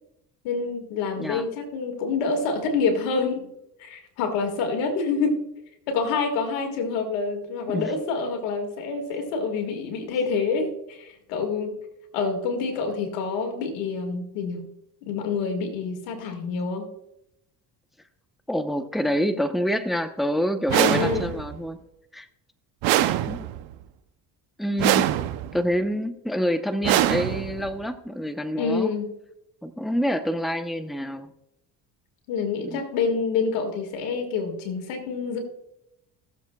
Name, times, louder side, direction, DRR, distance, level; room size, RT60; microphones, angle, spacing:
voice 1, 0.4-3.5 3.8-5.4 5.9-11.8 12.1-14.7 15.0-16.9 20.7-21.3 24.8-25.1 28.6-29.1 32.3-35.4, left 4 dB, 90° left, 4 dB, 2.1 m, -27 dB
voice 2, 1.2-1.5 7.7-7.9 18.5-21.8 22.1-22.3 23.0-23.4 24.6-25.0 25.5-28.9 29.6-31.3 32.6-32.8, equal, ahead, 8 dB, 0.9 m, -27 dB
sound 1, 20.7-21.6 22.8-23.7 24.8-25.6 26.8-27.7, right 14 dB, 80° right, 0.8 m, -23 dB
17.5 x 7.3 x 2.3 m, 0.83 s
supercardioid pair, 70°, 45 cm